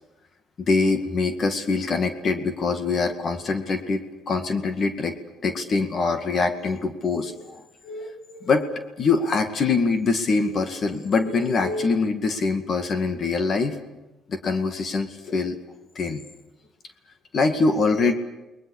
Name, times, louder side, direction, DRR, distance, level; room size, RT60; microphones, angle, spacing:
voice 1, 0.7-5.1 5.4-8.7 9.0-13.8 14.3-15.6 16.0-16.2 17.3-18.1, left 4 dB, 45° left, 7 dB, 2.1 m, -24 dB
29.5 x 21.0 x 6.5 m, 1.0 s
cardioid pair, 110°, 0 cm